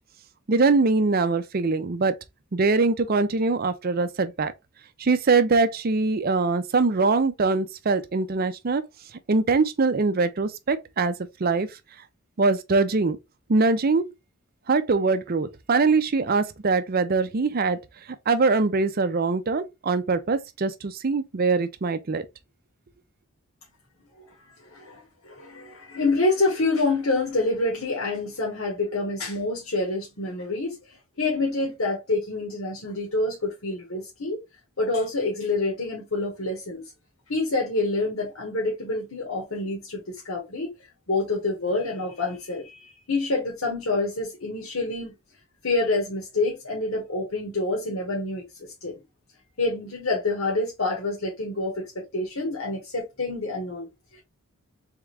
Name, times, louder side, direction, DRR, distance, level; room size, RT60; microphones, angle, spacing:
voice 1, 0.5-2.2 2.5-4.5 5.0-8.8 9.3-11.7 12.4-13.2 13.5-14.1 14.7-17.8 18.3-22.3, right 3 dB, 45° right, 0.5 m, -23 dB
voice 2, 24.6-30.8 31.2-34.4 34.8-36.8 37.3-40.7 41.1-45.1 45.6-48.4 48.8-49.0 49.6-54.2, left 2 dB, 75° left, 1.5 m, -27 dB
3.6 x 3.5 x 3.3 m
head